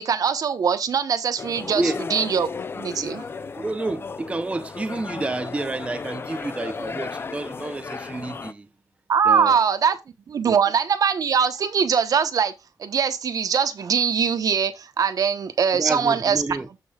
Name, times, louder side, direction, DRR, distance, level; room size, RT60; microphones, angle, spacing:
voice 1, 0.0-1.8 2.1-2.5 2.8-3.2 9.1-10.0 10.3-12.5 12.8-16.4, right 7 dB, 55° right, 1.0 m, -22 dB
sound 1, 1.4-8.5, left 5 dB, 30° left, 0.5 m, -34 dB
voice 2, 3.5-8.7 9.2-9.6 10.4-10.6 15.7-16.7, right 2 dB, 15° right, 0.7 m, -29 dB
14.0 x 5.4 x 2.3 m
cardioid pair, 105°, 7 cm